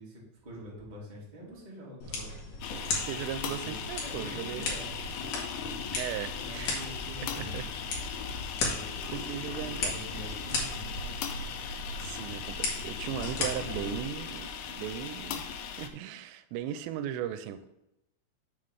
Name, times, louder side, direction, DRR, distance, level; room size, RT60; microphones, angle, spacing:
voice 1, 0.0-2.3 3.4-5.9 6.3-7.9 8.6-9.2 9.6-11.2, equal, 15° right, 1.5 m, -46 dB
sound 1, 2.0-14.0, left 3 dB, 60° left, 2.7 m, -37 dB
sound 2, 2.6-15.9, left 6 dB, 80° left, 2.3 m, -38 dB
voice 2, 2.9-4.7 5.9-6.8 7.4-7.7 9.1-10.0 12.0-17.7, right 10 dB, 85° right, 2.8 m, -37 dB
7.0 x 3.9 x 6.3 m
omnidirectional pair, 5.0 m